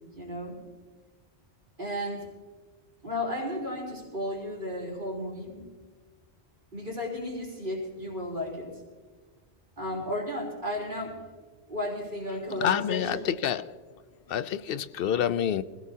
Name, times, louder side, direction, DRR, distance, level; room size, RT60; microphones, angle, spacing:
voice 1, 0.1-0.6 1.8-2.3 3.0-5.7 6.7-8.7 9.8-11.2 11.7-13.3, left 1 dB, 50° right, -2 dB, 3.9 m, -34 dB
voice 2, 12.6-13.8 14.3-15.6, left 9 dB, 65° left, 14 dB, 0.7 m, -28 dB
25.0 x 17.0 x 2.8 m, 1.5 s
omnidirectional pair, 1.1 m